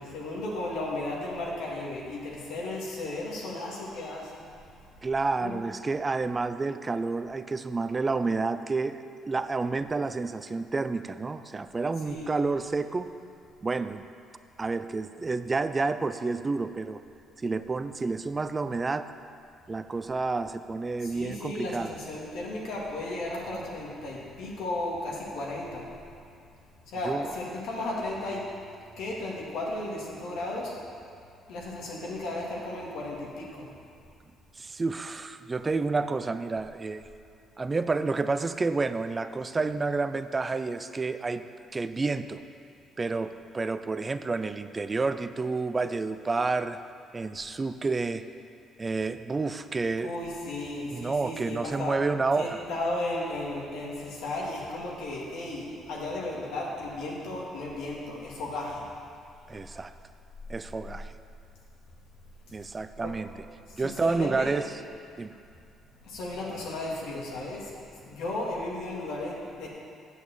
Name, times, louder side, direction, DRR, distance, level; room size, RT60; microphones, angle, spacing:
voice 1, 0.0-4.5 4.8-4.9 5.4-5.6 12.0-12.3 21.0-26.0 26.8-28.5 29.0-30.8 31.5-33.7 50.0-52.0 52.4-58.9 62.9-63.1 63.7-64.5 66.0-69.7, left 2 dB, 80° left, -3 dB, 2.2 m, -35 dB
voice 2, 5.0-13.1 13.6-14.0 14.6-17.0 17.4-19.1 19.7-21.9 27.0-27.3 34.6-37.1 37.6-41.4 41.7-42.4 43.0-46.8 47.1-48.3 48.8-50.1 50.9-52.6 59.5-59.9 60.5-61.1 62.5-63.3 63.7-64.7 65.2-65.3, right 3 dB, 25° right, 11 dB, 0.5 m, -29 dB
8.3 x 7.0 x 7.6 m, 2.4 s
cardioid pair, 95°, 0 cm